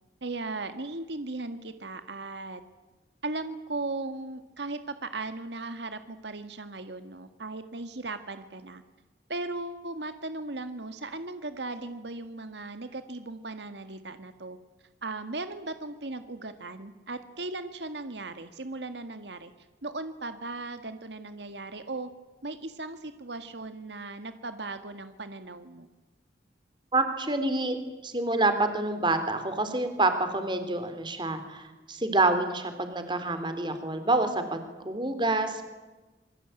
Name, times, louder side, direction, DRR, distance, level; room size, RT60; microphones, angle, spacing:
voice 1, 0.2-2.6 3.2-8.8 9.3-14.6 15.0-19.5 19.8-22.1 22.4-25.9, right 2 dB, 80° right, 9 dB, 1.9 m, -37 dB
voice 2, 26.9-27.8 28.0-35.8, right 2 dB, 25° right, 9 dB, 3.6 m, -27 dB
27.5 x 23.0 x 9.1 m, 1.2 s
head